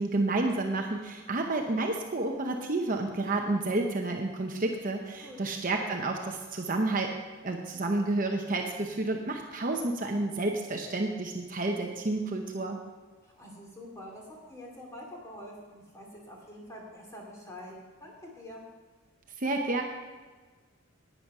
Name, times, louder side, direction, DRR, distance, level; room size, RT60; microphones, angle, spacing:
voice 1, 0.0-7.1 7.4-12.8 19.4-19.8, right 2 dB, 40° right, 2 dB, 0.8 m, -30 dB
voice 2, 13.2-17.7 18.0-18.6, left 1 dB, 15° left, -2 dB, 2.4 m, -46 dB
10.5 x 9.1 x 5.5 m, 1.4 s
head